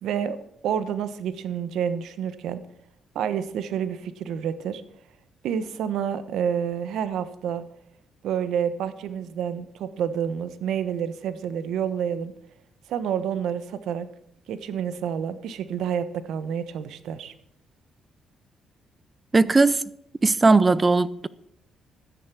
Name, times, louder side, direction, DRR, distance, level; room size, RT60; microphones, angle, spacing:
voice 1, 0.0-2.6 3.1-4.8 5.4-7.6 8.2-12.3 12.9-14.1 14.5-17.3, right 8 dB, 80° right, 1.2 m, -29 dB
voice 2, 19.3-19.9 20.2-21.3, right 3 dB, 25° right, 0.7 m, -18 dB
12.5 x 10.0 x 6.1 m
cardioid pair, 90°, 0 cm